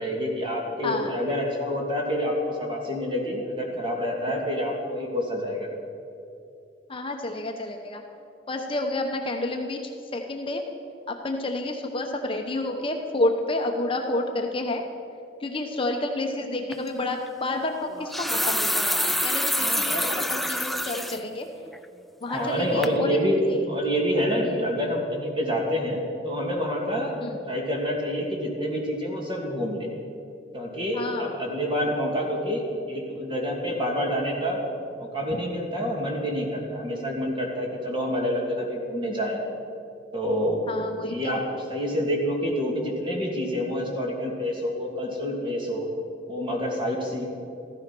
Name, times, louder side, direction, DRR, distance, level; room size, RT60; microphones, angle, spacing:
voice 1, 0.0-5.7 19.6-20.1 22.3-23.4 23.7-27.1 27.5-29.9 30.5-34.6 35.0-39.4 40.1-40.7 41.1-45.9 46.3-47.2, equal, 30° right, -1 dB, 2.8 m, -27 dB
voice 2, 0.8-1.2 6.9-8.0 8.5-10.6 11.1-14.8 15.4-21.5 22.2-23.1 23.5-23.6 24.4-24.6 27.2-27.4 30.9-31.3 35.3-35.4 40.7-41.4, left 2 dB, 30° left, 3 dB, 0.9 m, -30 dB
sound 1, 16.7-16.9 17.9-21.2 21.7-21.8 22.3-22.6 22.8-23.0, left 1 dB, ahead, 0.3 m, -27 dB
14.5 x 13.5 x 6.1 m, 2.7 s
head